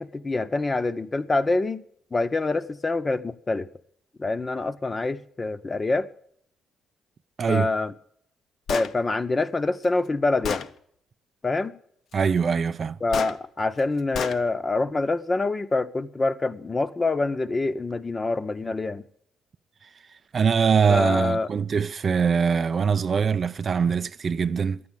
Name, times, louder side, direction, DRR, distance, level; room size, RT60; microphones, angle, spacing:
voice 1, 0.0-1.8 2.1-3.7 4.2-6.1 7.5-7.9 8.7-10.7 11.4-11.8 13.0-19.0 20.9-21.5, left 3 dB, 25° left, 0.7 m, -26 dB
voice 2, 7.4-7.7 12.1-13.0 19.8-19.9 20.3-24.9, right 6 dB, 45° right, 0.4 m, -23 dB
Gunshot gunfire, 8.7-8.9 9.8-9.9 10.4-10.7 13.1-13.3 14.1-14.4, left 7 dB, 65° left, 0.6 m, -29 dB
11.0 x 8.5 x 8.9 m
cardioid pair, 90°, 0 cm